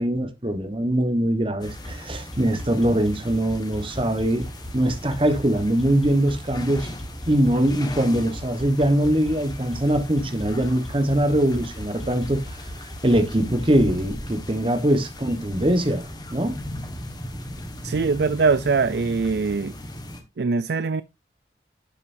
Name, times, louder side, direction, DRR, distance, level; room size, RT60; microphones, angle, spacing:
voice 1, 0.0-4.5 4.7-6.9 7.3-12.4 13.0-16.0 16.3-16.6, right 1 dB, 30° right, 1.2 m, -22 dB
sound 1, 1.6-20.2, left 1 dB, 25° left, 1.5 m, -38 dB
sound 2, 1.7-14.1, equal, ahead, 3.3 m, -38 dB
voice 2, 17.8-19.7 20.4-21.0, right 4 dB, 60° right, 0.4 m, -22 dB
11.5 x 6.9 x 2.7 m
head